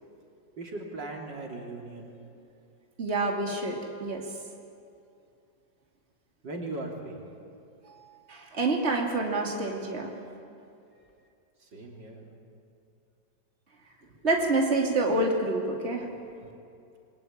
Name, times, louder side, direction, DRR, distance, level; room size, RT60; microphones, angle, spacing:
voice 1, 0.6-2.2 6.4-7.2 11.6-12.3, right 2 dB, 75° right, 0 dB, 4.0 m, -38 dB
voice 2, 3.0-4.2 8.3-10.1 14.2-16.1, right 2 dB, 35° right, 0 dB, 3.2 m, -27 dB
28.0 x 23.0 x 8.9 m, 2.6 s
omnidirectional pair, 1.9 m